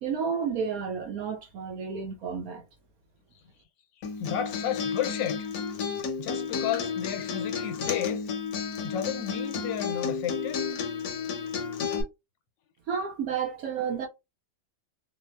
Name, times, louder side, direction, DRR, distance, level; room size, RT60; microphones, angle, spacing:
voice 1, 0.0-2.6 12.9-14.1, right 6 dB, 65° right, 0.9 m, -31 dB
Acoustic guitar, 4.0-12.0, left 6 dB, 65° left, 1.0 m, -32 dB
voice 2, 4.2-5.5 6.2-8.3 8.8-10.6, left 9 dB, 80° left, 1.3 m, -32 dB
4.2 x 2.0 x 2.3 m
omnidirectional pair, 2.0 m